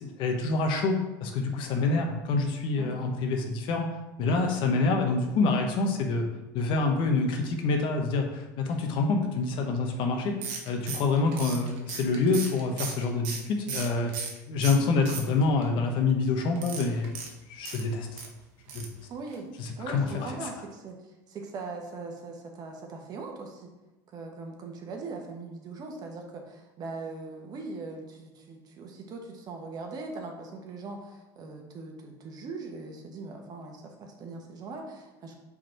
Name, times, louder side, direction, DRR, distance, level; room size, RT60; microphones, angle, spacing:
voice 1, 0.0-3.9 4.2-6.2 6.5-10.4 10.6-14.1 14.5-17.2 17.5-18.2 18.7-18.9 19.6-20.3, left 3 dB, 60° left, 3 dB, 1.1 m, -27 dB
sound 1, 10.4-14.4 14.6-15.6 16.6-18.3 18.7-19.0 19.3-19.4 19.7-19.8, right 6 dB, 65° right, 1.0 m, -37 dB
voice 2, 19.1-19.5 19.8-23.7 24.1-35.4, right 3 dB, 45° right, 2 dB, 1.2 m, -40 dB
5.1 x 4.1 x 4.5 m, 1.0 s
supercardioid pair, 105°, 9 cm